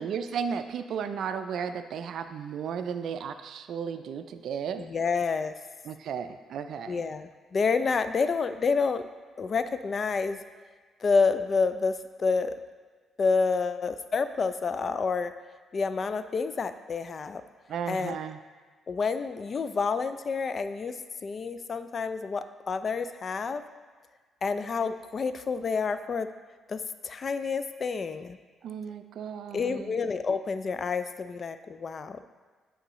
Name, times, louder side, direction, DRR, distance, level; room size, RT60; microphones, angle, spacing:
voice 1, 0.0-4.9 5.8-7.0 17.7-18.4 28.6-30.0, right 7 dB, 70° right, 9 dB, 0.3 m, -34 dB
voice 2, 4.8-5.5 6.9-9.0 9.4-10.4 11.0-12.5 13.2-15.3 15.7-17.4 17.9-18.2 18.9-23.6 24.4-26.3 26.7-28.4 29.5-32.2, left 4 dB, 45° left, 11 dB, 0.3 m, -29 dB
9.3 x 3.8 x 3.0 m, 1.4 s
cardioid pair, 90°, 0 cm